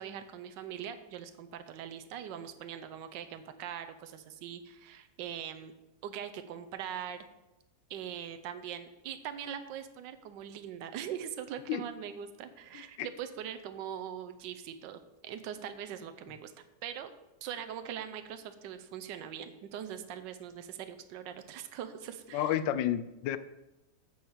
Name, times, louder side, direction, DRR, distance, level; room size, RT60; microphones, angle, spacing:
voice 1, 0.0-5.7 6.0-7.2 7.9-16.5 16.8-17.1 17.4-22.6, right 9 dB, 80° right, 9 dB, 1.4 m, -42 dB
voice 2, 12.7-13.1 22.3-23.4, left 11 dB, 85° left, 14 dB, 1.3 m, -31 dB
9.1 x 4.8 x 7.3 m, 0.95 s
omnidirectional pair, 2.0 m